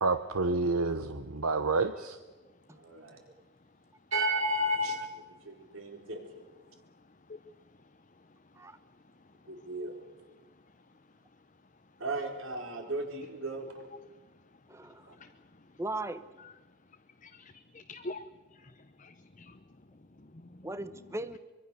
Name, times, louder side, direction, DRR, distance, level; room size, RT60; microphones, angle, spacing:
voice 1, 0.0-2.2 4.8-4.9, right 3 dB, 85° right, 10 dB, 0.9 m, -29 dB
voice 2, 2.7-3.2 4.1-6.4 9.5-10.0 12.0-13.7 15.1-15.2, equal, 65° right, 3 dB, 4.2 m, -34 dB
voice 3, 14.7-15.0 15.8-16.3 20.6-21.4, right 2 dB, 15° right, 13 dB, 0.9 m, -37 dB
voice 4, 17.2-18.2 18.6-19.6 20.2-20.7, left 2 dB, 35° left, 7 dB, 0.8 m, -46 dB
24.5 x 23.0 x 6.9 m, 1.2 s
head